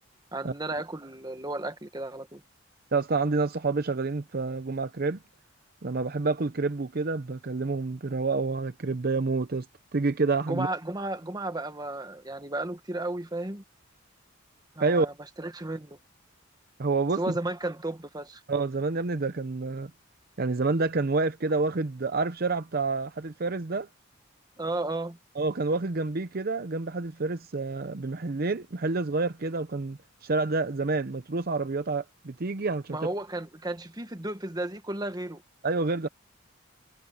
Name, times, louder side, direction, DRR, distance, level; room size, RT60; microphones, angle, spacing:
voice 1, 0.3-2.4 10.4-13.6 14.8-16.0 17.2-18.4 24.6-25.2 32.9-35.4, right 2 dB, 20° right, 1.3 m, -33 dB
voice 2, 2.9-5.2 5.8-9.7 9.9-10.7 14.8-15.1 16.8-17.4 18.5-19.9 20.4-23.9 25.4-33.0 35.6-36.1, right 3 dB, 50° right, 0.7 m, -28 dB
head